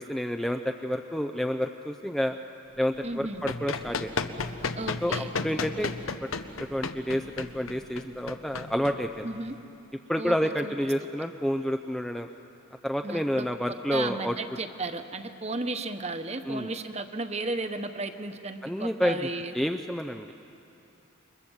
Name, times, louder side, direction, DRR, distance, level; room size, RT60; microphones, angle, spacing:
voice 1, 0.0-2.4 2.8-4.3 5.0-5.9 6.2-6.3 6.6-9.3 10.1-12.3 12.8-14.3 16.5-16.7 18.6-19.3 19.5-20.3, equal, ahead, 6 dB, 0.5 m, -29 dB
voice 2, 3.0-3.4 4.8-5.3 9.2-9.6 10.2-10.7 13.0-13.5 13.9-19.5, right 2 dB, 30° right, 8 dB, 1.1 m, -34 dB
Run, 3.1-9.5, left 4 dB, 85° left, 1.1 m, -34 dB
29.0 x 24.0 x 7.2 m, 2.8 s
head